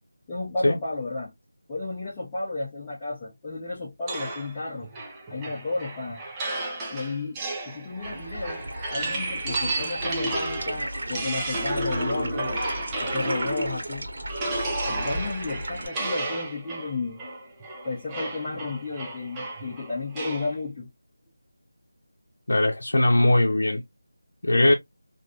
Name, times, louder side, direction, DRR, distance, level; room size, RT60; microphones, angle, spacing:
voice 1, 0.3-1.3 1.7-4.9 5.3-6.2 6.9-7.4 7.6-8.6 8.9-12.5 13.0-14.1 14.8-17.2 17.8-20.9 24.6-24.7, left 3 dB, 15° left, 0.8 m, -32 dB
sound 1, 4.1-13.9 14.3-20.5, right 2 dB, 10° right, 0.5 m, -32 dB
sound 2, 8.0-15.9, right 1 dB, 50° right, 1.4 m, -34 dB
voice 2, 22.5-23.8 24.4-24.7, left 1 dB, 70° left, 0.7 m, -20 dB
3.2 x 2.6 x 2.4 m
figure-of-eight pair, 175°, 0 cm